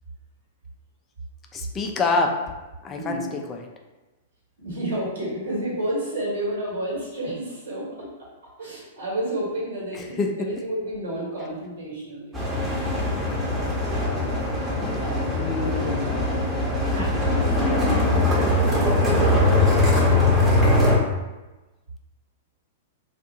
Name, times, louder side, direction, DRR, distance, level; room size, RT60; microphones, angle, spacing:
voice 1, 1.5-2.4 2.8-3.2 3.5-3.6 10.2-10.3 15.4-16.2, left 3 dB, 25° left, 2 dB, 0.3 m, -26 dB
voice 2, 2.9-3.4 4.6-8.3 8.6-12.9 13.3-13.8 14.2-14.5 15.0-15.3 15.6-16.0 16.9-19.1, right 1 dB, 75° right, -5 dB, 1.2 m, -31 dB
sound 1, 12.3-21.0, left 2 dB, 10° right, 0.8 m, -21 dB
2.6 x 2.4 x 2.6 m, 1.1 s
figure-of-eight pair, 105°, 0 cm